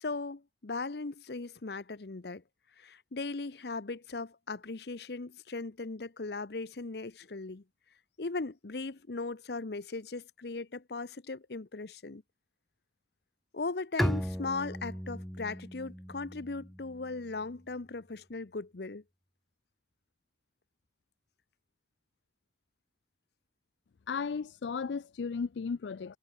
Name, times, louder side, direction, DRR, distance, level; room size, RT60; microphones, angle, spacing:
voice 1, 0.0-2.4 2.8-7.6 8.2-12.2 13.5-19.0, left 3 dB, 65° left, 0.8 m, -38 dB
Bowed string instrument, 14.0-17.5, equal, ahead, 0.5 m, -36 dB
voice 2, 24.1-26.2, left 5 dB, 80° left, 0.4 m, -35 dB
head